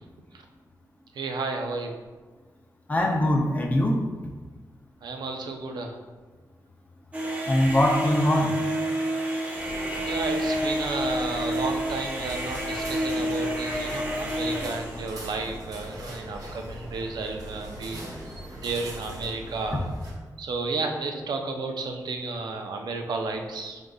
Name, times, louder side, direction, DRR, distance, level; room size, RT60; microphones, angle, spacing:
voice 1, 1.1-1.9 5.0-6.0 10.0-18.0 18.6-19.9 20.4-23.8, right 3 dB, 85° right, 3 dB, 0.5 m, -32 dB
voice 2, 2.9-4.0 7.5-8.5, left 1 dB, 20° left, 0 dB, 0.5 m, -22 dB
sound 1, 7.1-15.1, right 1 dB, 20° right, 0.7 m, -29 dB
sound 2, 9.5-20.1, right 1 dB, 55° right, 0.9 m, -40 dB
5.1 x 3.7 x 2.3 m, 1.3 s
wide cardioid pair, 180°, 7 cm